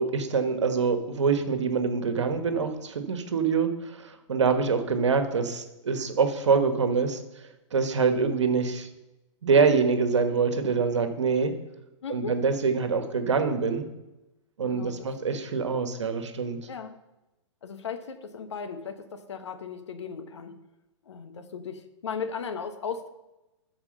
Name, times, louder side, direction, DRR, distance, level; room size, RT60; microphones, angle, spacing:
voice 1, 0.0-7.2 7.7-8.9 9.4-11.6 12.1-13.9 14.6-16.6, right 5 dB, 70° right, 7 dB, 1.5 m, -25 dB
voice 2, 12.0-12.4 14.7-15.1 16.7-17.0 17.6-20.5 21.0-23.1, left 6 dB, 65° left, 8 dB, 1.3 m, -36 dB
13.5 x 4.9 x 5.5 m, 0.98 s
figure-of-eight pair, 115°, 16 cm